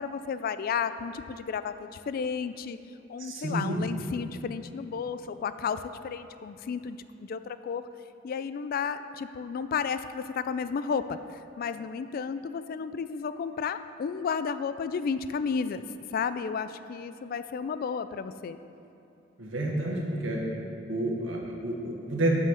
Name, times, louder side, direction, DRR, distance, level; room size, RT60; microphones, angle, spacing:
voice 1, 0.0-2.8 3.1-7.9 8.2-11.2 11.6-15.8 16.1-18.6, left 6 dB, 50° left, 12 dB, 0.3 m, -32 dB
voice 2, 3.2-3.8 19.4-20.4 20.9-22.5, right 1 dB, 80° right, -2 dB, 1.5 m, -29 dB
7.2 x 5.8 x 6.3 m, 2.9 s
head